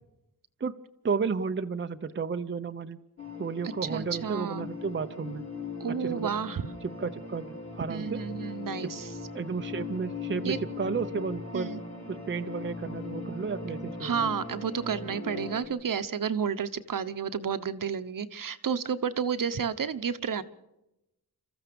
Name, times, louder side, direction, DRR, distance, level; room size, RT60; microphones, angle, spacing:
voice 1, 1.0-3.0 3.4-5.5 6.0-6.3 6.8-8.2 8.8-8.9 9.3-11.7 12.1-14.3, right 5 dB, 30° right, 8 dB, 0.7 m, -32 dB
sound 1, 3.2-15.6, left 4 dB, 45° left, 5.1 m, -39 dB
voice 2, 3.6-4.7 5.8-6.7 7.9-9.1 10.4-10.6 11.5-11.8 14.0-20.4, right 7 dB, 60° right, 11 dB, 1.1 m, -31 dB
27.5 x 14.5 x 7.0 m, 0.91 s
wide cardioid pair, 130°, 37 cm